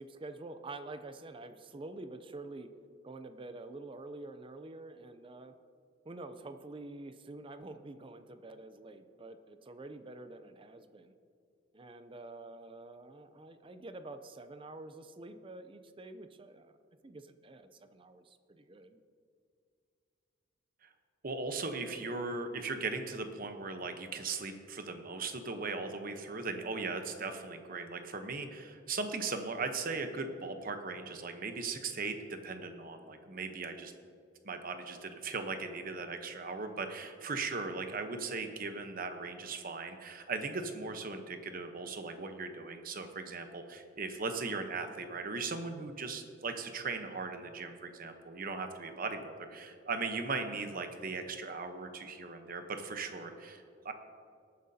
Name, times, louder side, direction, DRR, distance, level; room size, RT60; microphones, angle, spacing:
voice 1, 0.0-2.7 3.0-5.5 6.0-11.1 11.7-16.7 17.0-19.0, right 2 dB, 25° right, 9 dB, 0.5 m, -47 dB
voice 2, 21.2-33.9 34.4-53.9, right 4 dB, 50° right, 7 dB, 0.9 m, -38 dB
18.5 x 9.3 x 2.8 m, 2.4 s
head